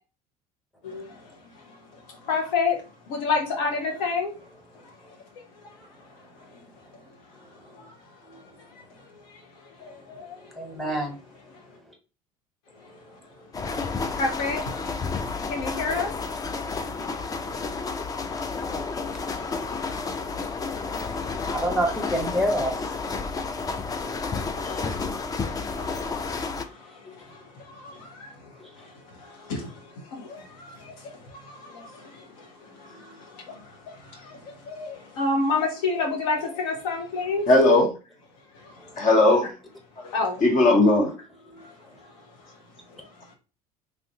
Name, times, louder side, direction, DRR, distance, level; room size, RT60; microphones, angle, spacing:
voice 1, 2.1-2.8 3.1-4.3 7.8-7.9 9.3-9.4 9.8-10.4 10.8-10.9 14.2-14.6 15.5-16.1 18.6-18.7 21.0-21.1 21.5-22.1 24.6-28.3 28.8-37.5 38.5-38.9 40.0-40.4 41.6-41.7 43.0-43.1, left 4 dB, 70° left, 0.8 m, -31 dB
voice 2, 10.5-11.2 12.9-13.0 16.7-16.9 21.5-22.9 27.0-27.1 28.6-28.7 32.9-33.1 38.8-38.9 41.5-41.6, equal, ahead, 1.2 m, -29 dB
sound 1, 13.5-26.6, left 4 dB, 20° left, 0.4 m, -31 dB
voice 3, 37.5-37.9 39.0-39.5 40.0-40.1 40.4-41.1, left 2 dB, 45° left, 1.1 m, -17 dB
3.3 x 2.6 x 2.7 m
hypercardioid pair, 65°, 19 cm